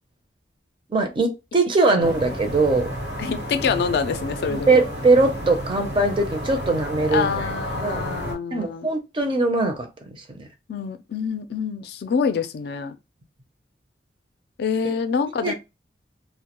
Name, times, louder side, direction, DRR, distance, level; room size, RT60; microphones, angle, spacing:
voice 1, 0.9-2.9 4.5-7.4 7.8-8.0 8.5-10.5 14.8-14.9 15.4-15.5, right 3 dB, 30° right, 0.5 m, -21 dB
sound 1, 2.0-8.3, equal, 75° right, 1.0 m, -31 dB
voice 2, 3.2-4.7 7.1-8.9 10.7-12.9 14.6-15.5, left 6 dB, 65° left, 0.3 m, -26 dB
2.2 x 2.0 x 2.8 m
head